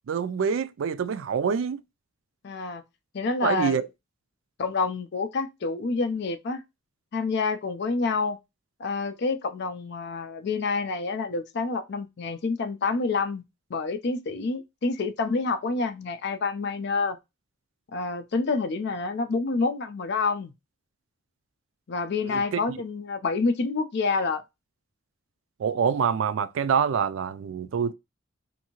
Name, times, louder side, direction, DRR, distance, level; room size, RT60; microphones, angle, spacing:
voice 1, 0.1-1.8 3.4-3.9 22.3-22.8 25.6-27.9, right 7 dB, 80° right, 0.4 m, -26 dB
voice 2, 2.4-2.8 3.1-3.8 4.6-6.6 7.1-8.4 8.8-13.4 13.7-17.2 17.9-20.5 21.9-24.4, left 4 dB, 60° left, 0.4 m, -28 dB
2.7 x 2.6 x 2.9 m
head